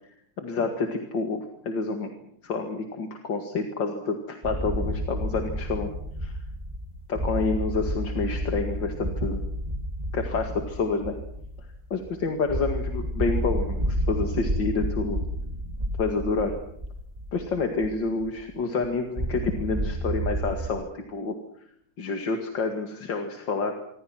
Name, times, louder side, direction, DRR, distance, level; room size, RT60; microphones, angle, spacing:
voice 1, 0.4-2.1 2.4-5.9 6.2-6.3 7.1-9.4 10.1-11.2 11.9-15.2 16.0-16.6 17.3-21.4 22.0-23.8, left 4 dB, 85° left, 4 dB, 2.8 m, -28 dB
sound 1, 4.4-18.5 18.8-18.9 19.1-20.7, equal, 20° right, 3.1 m, -31 dB
27.0 x 24.5 x 6.0 m, 0.69 s
omnidirectional pair, 2.0 m